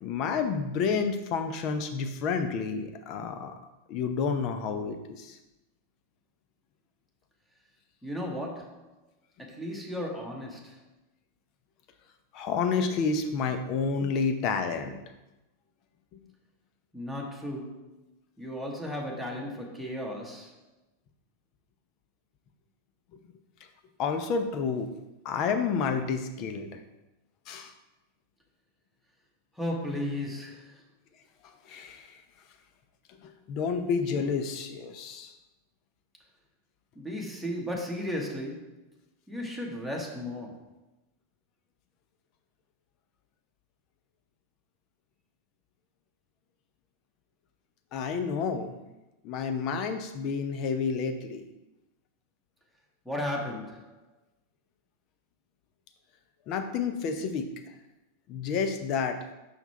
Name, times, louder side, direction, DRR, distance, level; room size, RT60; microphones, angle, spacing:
voice 1, 0.0-3.5 3.9-5.4 12.3-15.0 24.0-24.9 25.2-26.8 27.5-27.7 31.7-32.1 33.2-35.3 47.9-48.7 49.2-51.4 56.5-57.5 58.3-59.2, left 5 dB, 40° left, 7 dB, 0.7 m, -30 dB
voice 2, 8.0-8.9 9.4-10.8 16.9-17.8 18.4-20.6 29.6-30.8 36.9-38.8 39.3-40.7 53.0-54.0, left 1 dB, ahead, -1 dB, 1.4 m, -35 dB
5.8 x 5.5 x 4.3 m, 0.97 s
figure-of-eight pair, 90°, 0 cm